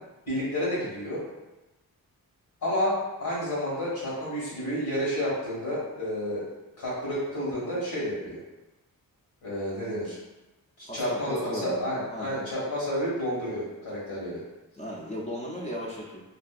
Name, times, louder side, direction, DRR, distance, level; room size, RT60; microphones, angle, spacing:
voice 1, 0.3-1.3 2.6-6.4 6.8-8.4 9.4-10.2 10.8-14.4, equal, 80° left, -6 dB, 1.3 m, -30 dB
voice 2, 10.8-11.8 12.1-12.4 14.8-16.2, equal, 20° left, -6 dB, 0.4 m, -36 dB
2.6 x 2.2 x 2.3 m, 1.0 s
wide cardioid pair, 95°, 36 cm